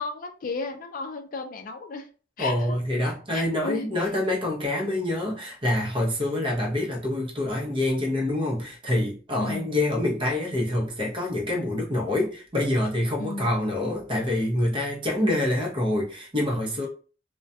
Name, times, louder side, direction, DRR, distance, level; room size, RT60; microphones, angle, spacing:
voice 1, 0.0-2.1 2.4-2.8 3.3-4.1 9.4-9.7 13.2-13.5 15.2-15.4, left 3 dB, 50° left, 6 dB, 0.4 m, -34 dB
voice 2, 2.4-16.9, left 1 dB, 30° right, -1 dB, 0.7 m, -26 dB
2.3 x 2.1 x 2.6 m, 0.37 s
head